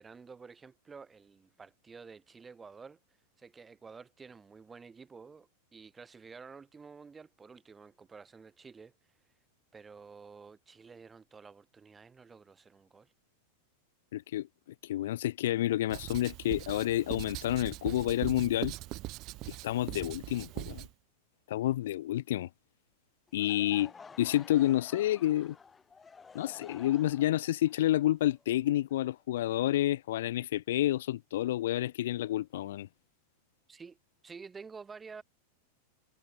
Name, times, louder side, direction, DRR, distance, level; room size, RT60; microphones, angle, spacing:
voice 1, 0.0-3.0 3.4-8.9 9.7-13.1 33.7-34.0 34.2-35.2, right 5 dB, 15° right, 3.3 m, -50 dB
voice 2, 14.1-14.5 14.8-18.7 19.6-20.9 21.5-22.5 23.3-23.9 24.2-25.6 26.3-32.9, left 13 dB, 55° left, 0.8 m, -29 dB
Writing, 15.9-20.9, right 19 dB, 40° right, 1.1 m, -41 dB
Laughter / Crowd, 23.3-29.2, left 5 dB, 15° left, 7.3 m, -52 dB
figure-of-eight pair, 90°, 0 cm